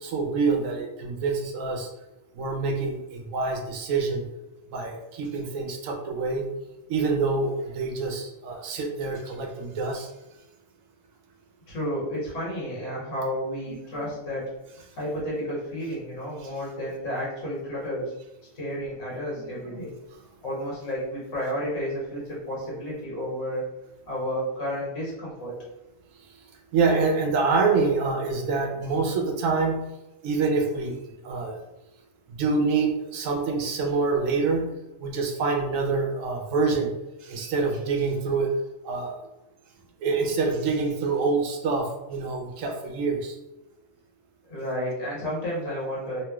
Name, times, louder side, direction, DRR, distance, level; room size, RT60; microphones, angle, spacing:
voice 1, 0.0-1.9 2.3-4.2 4.7-6.5 6.9-10.1 13.7-14.1 19.4-19.8 26.7-29.8 30.2-31.0 31.2-31.6 32.3-34.7 35.0-36.9 37.2-38.5 38.8-39.1 40.0-43.4, right 4 dB, 80° right, 3 dB, 1.0 m, -26 dB
voice 2, 11.7-14.5 15.0-18.1 18.5-19.9 20.4-23.7 24.1-25.6 44.5-46.2, equal, 75° left, -6 dB, 1.4 m, -31 dB
3.0 x 2.9 x 2.3 m, 0.95 s
omnidirectional pair, 1.3 m